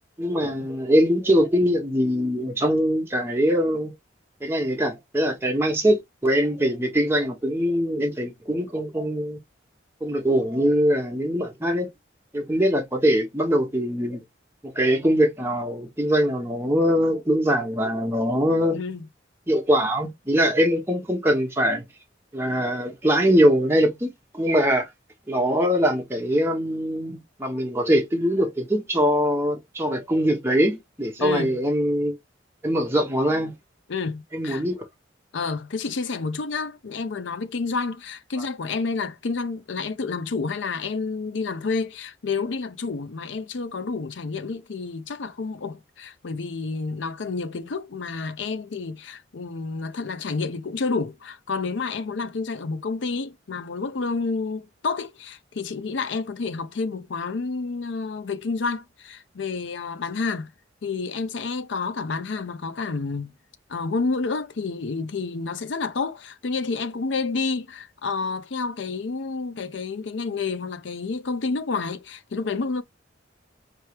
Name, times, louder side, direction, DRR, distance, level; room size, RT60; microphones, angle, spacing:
voice 1, 0.2-3.9 4.4-9.4 10.0-11.9 12.3-14.2 14.6-18.8 19.5-21.8 22.3-24.9 25.3-32.2 32.6-33.5 34.3-34.8, equal, 15° right, 1.1 m, -22 dB
voice 2, 18.7-19.1 31.2-31.6 33.9-34.6 35.3-60.5 60.8-63.3 63.7-72.8, left 4 dB, 70° left, 0.6 m, -29 dB
4.5 x 3.0 x 3.2 m
head